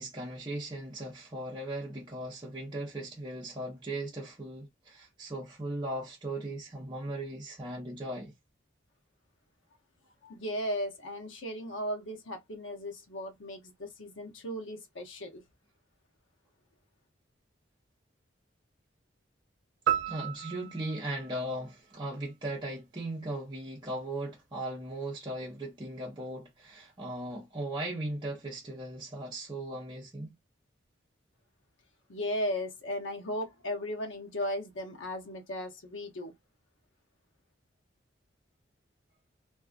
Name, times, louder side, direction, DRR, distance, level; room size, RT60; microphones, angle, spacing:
voice 1, 0.0-8.3 20.1-30.4, right 1 dB, 25° right, 0.7 m, -38 dB
voice 2, 10.2-15.4 32.1-36.3, left 1 dB, 80° left, 0.8 m, -36 dB
sound 1, 19.9-22.3, right 10 dB, 65° right, 0.3 m, -34 dB
2.6 x 2.4 x 2.4 m
head